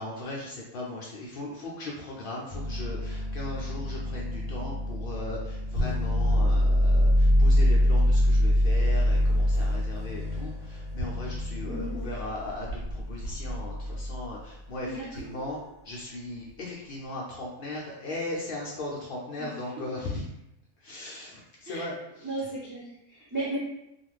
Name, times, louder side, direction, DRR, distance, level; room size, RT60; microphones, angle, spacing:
voice 1, 0.0-20.2 20.8-22.3, left 2 dB, 85° left, -3 dB, 0.4 m, -38 dB
sound 1, 2.5-14.3 15.2-15.5, left 1 dB, 80° right, 1.3 m, -25 dB
voice 2, 11.6-12.1 14.8-15.1 19.4-19.5 21.6-21.9 22.2-23.6, right 1 dB, 20° right, -8 dB, 0.6 m, -35 dB
2.4 x 2.4 x 3.2 m, 0.84 s
omnidirectional pair, 1.5 m